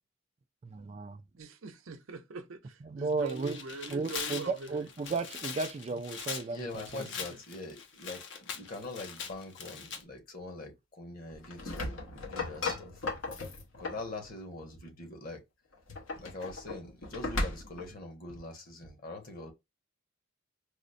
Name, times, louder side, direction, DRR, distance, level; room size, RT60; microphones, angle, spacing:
voice 1, 0.6-1.2 2.8-3.6 3.9-7.1, right 4 dB, 35° right, 0.3 m, -34 dB
voice 2, 1.4-4.9 7.0-7.4, right 4 dB, 85° right, 0.7 m, -43 dB
Tearing, 3.1-10.0, left 6 dB, 60° left, 0.7 m, -41 dB
voice 3, 6.5-13.0 13.8-15.4 16.1-19.5, left 2 dB, 45° left, 1.2 m, -43 dB
sound 1, 11.3-14.1 15.7-17.9, left 2 dB, 80° left, 1.0 m, -36 dB
4.8 x 2.1 x 2.5 m
head